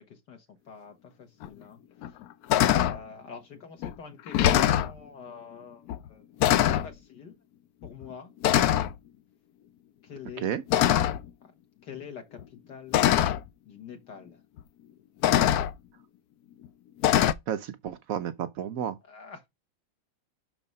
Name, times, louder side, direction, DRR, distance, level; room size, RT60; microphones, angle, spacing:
voice 1, 0.0-2.2 2.7-6.2 6.8-7.4 7.8-8.3 10.0-10.5 11.4-11.5 11.8-13.0 13.7-14.4 19.0-19.5, left 6 dB, 60° left, 2.0 m, -46 dB
sound 1, 1.4-1.5 2.0-2.2 2.5-3.0 3.8-3.9 4.3-4.9 5.9-6.1 6.4-6.9 7.8-8.1 8.4-8.9 10.7-11.3 12.4-12.5 12.9-13.4 14.6-14.7 15.2-15.7 17.0-17.3, left 11 dB, 75° left, 0.8 m, -22 dB
voice 2, 17.5-19.0, right 9 dB, 75° right, 0.8 m, -32 dB
6.2 x 4.8 x 5.3 m
omnidirectional pair, 2.2 m